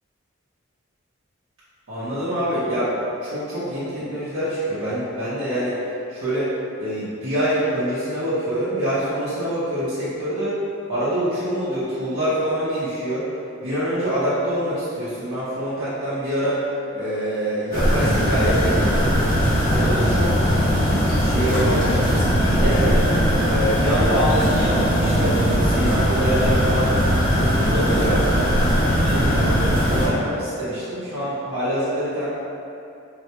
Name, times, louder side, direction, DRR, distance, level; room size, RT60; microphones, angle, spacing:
voice 1, 1.9-2.9 3.2-5.8 6.1-6.5 6.8-10.5 10.9-13.3 13.6-16.6 16.9-19.2 19.7-20.3 21.2-23.1 23.4-26.9 27.3-28.2 28.8-32.3, equal, 70° right, -12 dB, 0.7 m, -25 dB
sound 1, 17.7-30.1, equal, 40° left, 1.1 m, -19 dB
4.0 x 2.2 x 2.9 m, 2.6 s
head